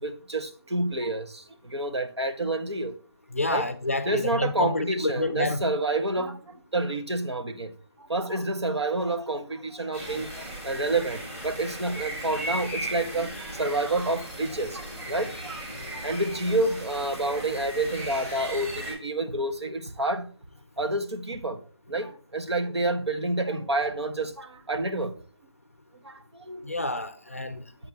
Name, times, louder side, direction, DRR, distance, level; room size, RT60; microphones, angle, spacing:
voice 1, 0.0-2.9 3.5-3.7 4.0-7.7 8.1-13.3 13.6-15.6 15.9-20.3 20.8-21.6 21.9-25.1 26.0-26.2 26.5-26.7, right 2 dB, 85° right, 1.5 m, -29 dB
voice 2, 3.3-5.6 26.6-27.6, left 2 dB, 35° left, 0.5 m, -28 dB
sound 1, 9.9-18.9, right 1 dB, 10° right, 2.5 m, -37 dB
7.7 x 6.1 x 3.5 m
figure-of-eight pair, 180°, 14 cm